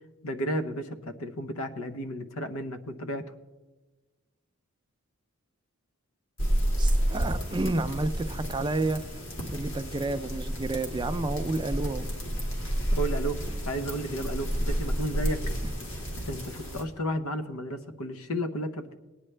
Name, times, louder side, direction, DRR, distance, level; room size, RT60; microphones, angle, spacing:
voice 1, 0.2-3.3 12.9-15.4 16.3-19.0, equal, 85° left, 9 dB, 0.9 m, -33 dB
sound 1, 6.4-16.8, equal, 60° left, 2.0 m, -30 dB
voice 2, 6.8-9.0 9.5-12.1, right 2 dB, 20° right, 10 dB, 0.4 m, -30 dB
18.0 x 9.7 x 3.3 m, 1.2 s
head